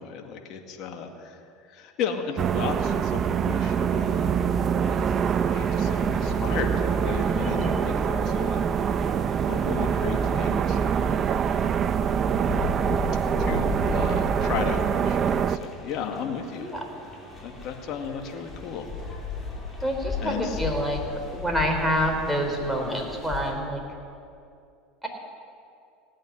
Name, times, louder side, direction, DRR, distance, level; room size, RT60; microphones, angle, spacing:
voice 1, 0.0-1.4 1.7-4.5 5.3-7.6 7.8-8.6 9.5-11.8 13.4-16.7 17.4-18.9 20.2-20.6, left 7 dB, 55° left, 4 dB, 2.0 m, -35 dB
sound 1, 2.4-15.6, right 7 dB, 40° right, 0.6 m, -25 dB
sound 2, 4.8-23.5, left 4 dB, 20° left, 4.2 m, -37 dB
voice 2, 7.4-7.9 16.6-16.8 19.8-21.0 21.3-23.8 25.0-25.1, equal, ahead, 2 dB, 3.7 m, -27 dB
16.5 x 9.0 x 9.7 m, 2.5 s
hypercardioid pair, 85°, 0 cm